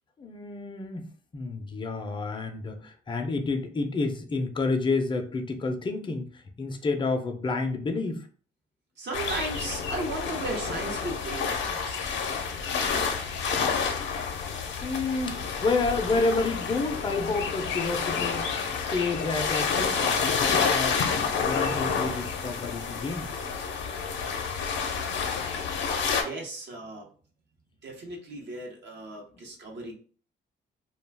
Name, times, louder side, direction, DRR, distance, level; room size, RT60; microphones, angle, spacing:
voice 1, 0.2-1.1 1.3-8.3 14.8-18.5 18.7-21.0 21.4-23.3 29.3-29.4, left 3 dB, 25° left, 4 dB, 0.5 m, -29 dB
voice 2, 9.0-12.1 26.2-27.1 27.8-29.9, right 2 dB, 60° right, 0 dB, 0.8 m, -36 dB
sound 1, 9.1-26.2, left 6 dB, 70° left, 0.6 m, -29 dB
2.3 x 2.3 x 3.3 m, 0.42 s
cardioid pair, 90°, 20 cm